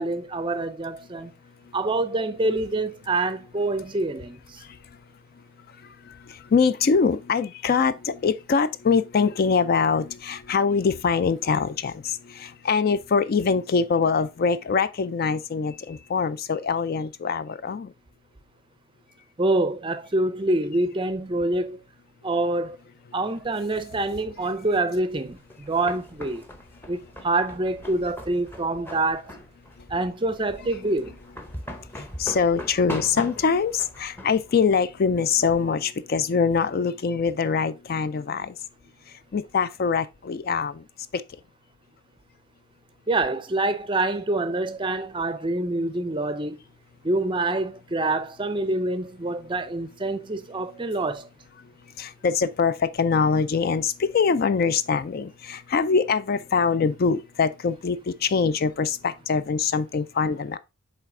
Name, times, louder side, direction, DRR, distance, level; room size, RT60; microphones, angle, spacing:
voice 1, 0.0-1.3 1.7-4.6 19.4-21.8 22.2-22.8 23.1-26.4 26.9-27.0 27.2-29.3 29.9-31.1 43.1-46.6 47.0-51.3, right 2 dB, 25° right, 0.5 m, -26 dB
voice 2, 4.6-5.0 5.7-17.9 29.8-29.9 30.8-30.9 31.9-38.6 39.1-40.8 41.1-41.2 51.6-51.7 52.0-60.6, left 5 dB, 45° left, 0.3 m, -24 dB
sound 1, 25.3-35.7, left 1 dB, 10° left, 0.8 m, -41 dB
8.0 x 3.3 x 3.7 m
head